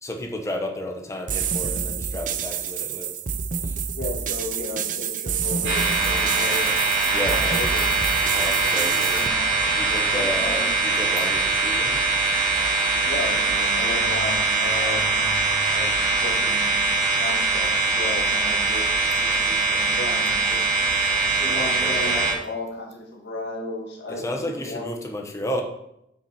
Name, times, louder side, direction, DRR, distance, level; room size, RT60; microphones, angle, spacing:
voice 1, 0.0-3.1 3.6-3.8 7.1-7.8 8.3-9.3 9.7-12.2 21.4-22.2 24.1-25.6, left 1 dB, 15° left, 3 dB, 1.1 m, -32 dB
sound 1, 1.3-9.3, right 7 dB, 45° right, 0.5 m, -28 dB
voice 2, 3.9-6.8 7.1-7.9 8.6-9.4 10.1-10.8 13.0-15.4 15.7-16.7 17.1-18.8 19.2-20.8 21.4-24.8, left 2 dB, 65° left, -1 dB, 2.0 m, -34 dB
sound 2, 5.6-22.3, right 3 dB, 70° right, 2.6 m, -22 dB
7.5 x 6.1 x 4.4 m, 0.80 s
head